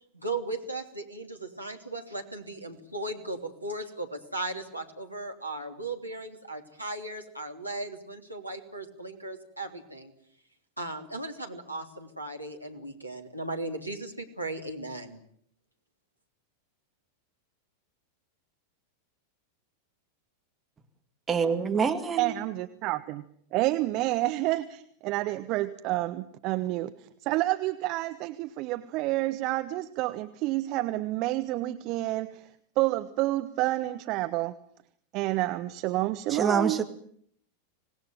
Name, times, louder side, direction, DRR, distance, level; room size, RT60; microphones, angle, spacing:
voice 1, 0.1-10.1 10.8-15.2, right 2 dB, 90° right, 3 dB, 3.2 m, -37 dB
voice 2, 21.3-22.3 36.3-36.8, right 6 dB, 15° right, 5 dB, 2.4 m, -26 dB
voice 3, 22.2-23.2 23.5-26.9 27.2-32.5 32.8-34.5 35.1-36.8, right 17 dB, 40° right, 10 dB, 1.1 m, -29 dB
26.0 x 20.0 x 9.1 m, 0.66 s
figure-of-eight pair, 90°, 0 cm